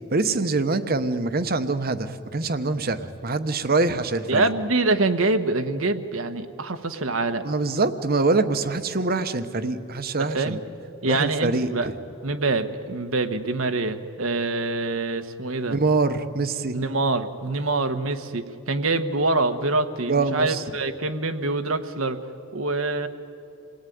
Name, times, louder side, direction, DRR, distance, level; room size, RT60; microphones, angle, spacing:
voice 1, 0.1-4.5 7.4-10.6 11.1-11.7 15.7-16.8 20.1-20.6, right 3 dB, 45° right, 11 dB, 1.0 m, -24 dB
voice 2, 4.3-7.4 10.3-10.6 11.0-11.9 12.2-15.8 16.7-22.2 22.5-23.1, right 2 dB, 75° right, 7 dB, 1.3 m, -25 dB
27.5 x 19.0 x 9.4 m, 2.8 s
head